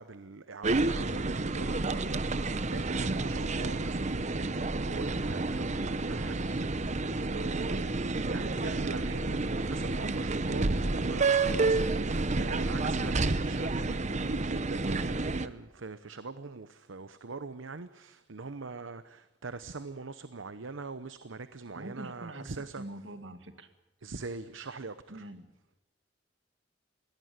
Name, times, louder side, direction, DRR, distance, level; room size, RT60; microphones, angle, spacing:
voice 1, 0.0-22.8 24.0-25.3, right 3 dB, 90° right, 0.9 m, -42 dB
sound 1, 0.6-15.5, right 3 dB, 40° right, 0.9 m, -30 dB
voice 2, 21.7-23.7 24.0-24.1 25.1-25.5, right 1 dB, 70° right, 2.1 m, -44 dB
21.0 x 17.5 x 9.5 m
head